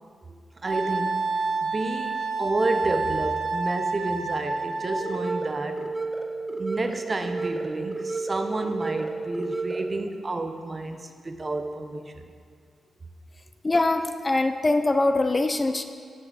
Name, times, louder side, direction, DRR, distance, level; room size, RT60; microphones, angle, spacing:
voice 1, 0.6-5.8 6.3-12.1, right 2 dB, 35° right, 7 dB, 0.8 m, -30 dB
Wind instrument woodwind instrument, 0.7-5.5, right 3 dB, 70° right, 1.0 m, -29 dB
sound 1, 5.0-10.0, right 3 dB, 10° right, 0.9 m, -31 dB
voice 2, 13.6-15.8, left 2 dB, 25° left, 8 dB, 0.5 m, -23 dB
14.5 x 5.6 x 4.0 m, 2.1 s
cardioid pair, 75°, 0 cm